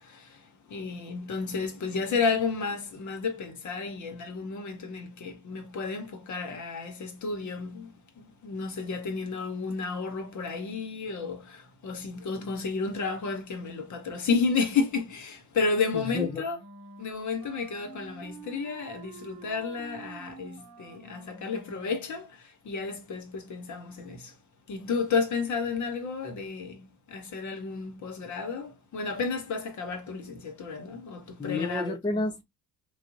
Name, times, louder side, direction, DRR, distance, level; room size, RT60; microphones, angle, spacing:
voice 1, 0.0-16.6 17.0-24.3 24.7-31.9, left 4 dB, 40° left, 1.1 m, -32 dB
voice 2, 15.9-16.4 31.4-32.4, left 3 dB, 10° left, 0.6 m, -30 dB
Wind instrument woodwind instrument, 16.1-22.4, right 4 dB, 35° right, 0.9 m, -48 dB
3.2 x 2.5 x 2.5 m
hypercardioid pair, 55°, 44 cm